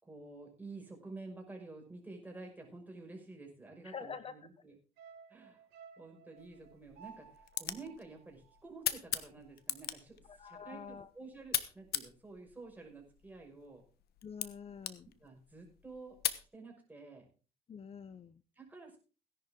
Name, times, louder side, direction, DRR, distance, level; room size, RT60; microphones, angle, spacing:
voice 1, 0.0-4.7 5.3-5.6 6.0-13.8 15.2-17.3 18.6-19.0, right 3 dB, 10° right, 1 dB, 5.6 m, -50 dB
voice 2, 3.8-4.3 10.3-11.1 14.2-15.1 17.7-18.4, left 6 dB, 35° left, 14 dB, 0.7 m, -46 dB
sound 1, 5.0-9.4 9.7-9.8, right 7 dB, 80° right, 2.2 m, -57 dB
sound 2, 6.4-16.5, left 12 dB, 70° left, 1.2 m, -42 dB
17.0 x 11.0 x 3.7 m, 0.35 s
cardioid pair, 110°, 17 cm